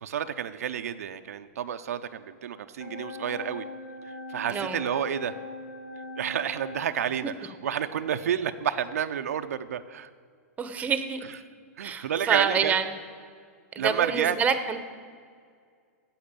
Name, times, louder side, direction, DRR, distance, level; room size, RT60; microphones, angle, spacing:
voice 1, 0.0-3.6 4.0-5.3 6.2-10.1 11.8-12.7 13.8-14.4, right 9 dB, 80° right, 8 dB, 0.6 m, -30 dB
sound 1, 2.8-6.9, left 3 dB, 85° left, 1.8 m, -41 dB
voice 2, 10.6-11.2 11.8-12.9 13.7-14.8, right 6 dB, 15° right, 10 dB, 0.9 m, -27 dB
8.6 x 7.9 x 8.9 m, 2.1 s
hypercardioid pair, 125°, 8 cm